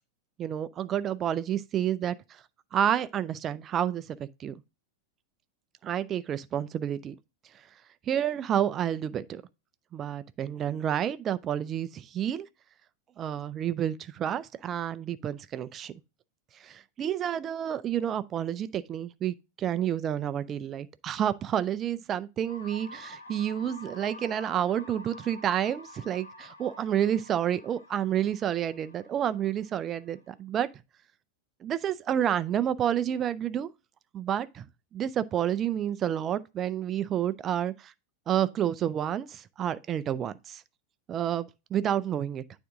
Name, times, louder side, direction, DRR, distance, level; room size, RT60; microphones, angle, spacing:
voice 1, 0.4-2.4 2.7-4.5 5.8-7.2 8.1-9.4 9.9-12.5 13.2-15.9 16.5-30.7 31.6-33.7 34.1-34.7 34.9-37.9 38.3-40.6 41.1-42.4, right 10 dB, 30° right, 0.4 m, -29 dB
sound 1, 22.5-30.3, left 1 dB, 75° left, 1.1 m, -49 dB
9.3 x 3.6 x 3.6 m
figure-of-eight pair, 90°, 0 cm